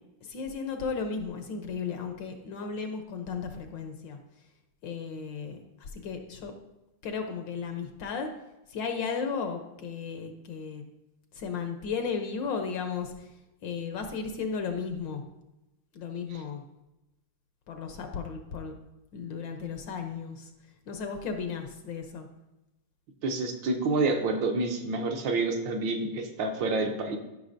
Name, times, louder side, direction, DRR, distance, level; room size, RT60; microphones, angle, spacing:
voice 1, 0.2-4.2 4.8-6.5 7.0-8.3 8.7-10.8 11.3-13.3 13.6-15.2 15.9-16.6 17.7-18.8 19.1-20.5 20.9-22.3, left 5 dB, 65° left, 6 dB, 1.3 m, -35 dB
voice 2, 23.2-27.2, right 3 dB, 70° right, 3 dB, 1.4 m, -28 dB
13.0 x 5.8 x 2.6 m, 0.94 s
omnidirectional pair, 2.4 m